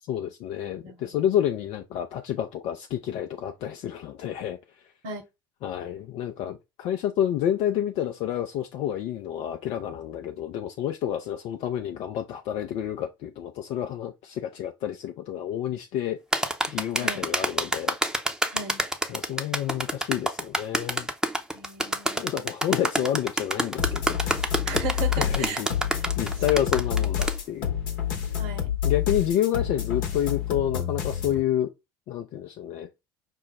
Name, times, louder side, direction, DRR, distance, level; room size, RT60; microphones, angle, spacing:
voice 1, 0.1-4.6 5.6-16.2 16.7-18.0 19.1-21.1 22.2-24.4 25.1-25.7 26.2-27.8 28.8-31.7 32.1-32.9, left 11 dB, 55° left, 0.5 m, -29 dB
voice 2, 0.8-1.2 5.0-5.2 17.0-17.3 18.5-18.8 21.5-22.3 24.7-25.6 28.4-28.8, right 4 dB, 60° right, 1.1 m, -36 dB
sound 1, 16.3-27.4, right 1 dB, 5° right, 0.7 m, -27 dB
sound 2, 23.8-31.4, left 9 dB, 70° left, 0.9 m, -28 dB
5.4 x 2.0 x 3.9 m
figure-of-eight pair, 60°, 12 cm